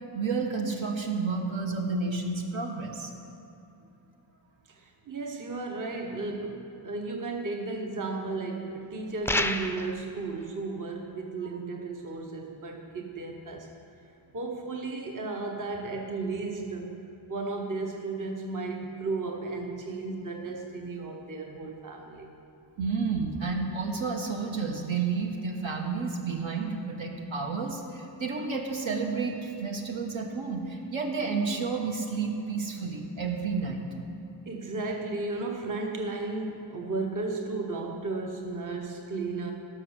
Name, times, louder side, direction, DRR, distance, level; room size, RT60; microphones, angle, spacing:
voice 1, 0.1-3.1 22.8-33.8, right 4 dB, 75° right, 2 dB, 1.5 m, -31 dB
voice 2, 4.7-13.7 14.3-17.0 17.3-22.3 34.5-39.5, right 3 dB, 40° right, 2 dB, 1.0 m, -34 dB
sound 1, 9.3-10.0, left 2 dB, 5° left, 0.3 m, -28 dB
16.5 x 6.4 x 6.3 m, 2.9 s
wide cardioid pair, 135°, 47 cm